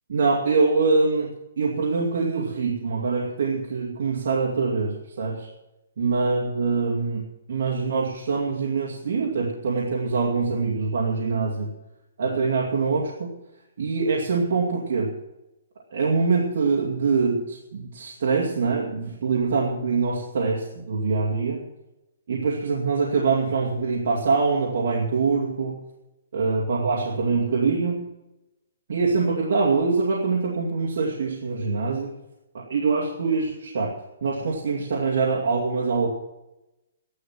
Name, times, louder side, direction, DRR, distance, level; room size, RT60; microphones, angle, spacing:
voice 1, 0.1-1.3 1.6-5.5 6.0-7.2 7.5-11.7 12.2-13.3 13.8-15.2 15.9-21.7 22.3-25.8 26.3-28.1 28.9-32.2 32.5-36.1, right 4 dB, 60° right, -2 dB, 2.5 m, -24 dB
13.5 x 11.5 x 6.0 m, 0.95 s
hypercardioid pair, 170°, 0 cm